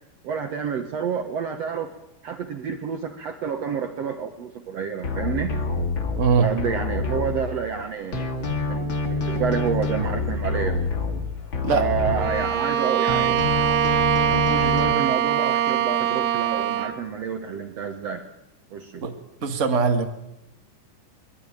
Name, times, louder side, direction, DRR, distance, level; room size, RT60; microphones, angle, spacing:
voice 1, 0.2-1.9 2.2-5.5 6.3-8.4 8.7-10.8 11.7-13.4 14.3-18.2 18.7-19.1, right 7 dB, 55° right, 5 dB, 2.1 m, -29 dB
sound 1, 5.0-7.8 8.1-12.8 13.1-14.9, left 3 dB, 35° left, 2.9 m, -27 dB
voice 2, 11.6-12.1 19.0-19.1 19.4-20.0, right 5 dB, 25° right, 4 dB, 1.9 m, -21 dB
Bowed string instrument, 12.2-17.0, right 9 dB, 75° right, 2.8 m, -23 dB
24.0 x 21.5 x 9.1 m, 0.90 s
omnidirectional pair, 4.0 m